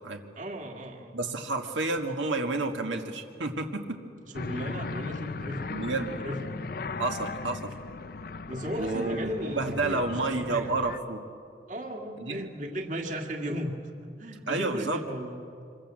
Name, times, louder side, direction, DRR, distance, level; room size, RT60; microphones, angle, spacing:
voice 1, 0.4-1.2 4.2-5.7 6.1-6.6 8.5-10.7 11.7-13.7 14.2-15.4, equal, 40° right, 3 dB, 1.9 m, -35 dB
voice 2, 1.1-4.0 5.7-6.2 7.0-7.7 8.7-11.2 12.2-12.5 14.5-15.0, right 3 dB, 85° right, 4 dB, 1.7 m, -30 dB
sound 1, 4.3-11.0, left 4 dB, 50° left, 0.5 m, -37 dB
26.0 x 22.5 x 7.6 m, 2.4 s
head